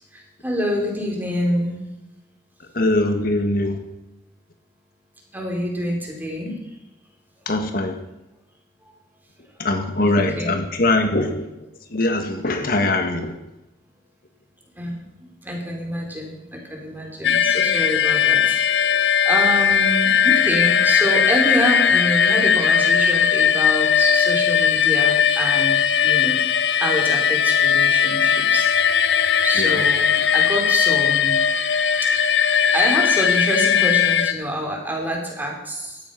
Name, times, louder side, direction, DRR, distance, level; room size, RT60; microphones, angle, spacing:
voice 1, 0.1-1.8 5.3-6.5 10.0-10.6 14.7-26.4 26.7-28.7 29.4-31.4 32.0-32.1 32.7-36.0, equal, 10° right, 0 dB, 4.4 m, -26 dB
voice 2, 2.7-3.8 7.5-8.0 9.6-11.5 11.9-13.3 29.6-29.8, left 2 dB, 55° left, 6 dB, 1.6 m, -21 dB
sound 1, 17.2-34.3, left 7 dB, 80° left, 0.9 m, -18 dB
17.0 x 13.0 x 5.8 m, 0.95 s
head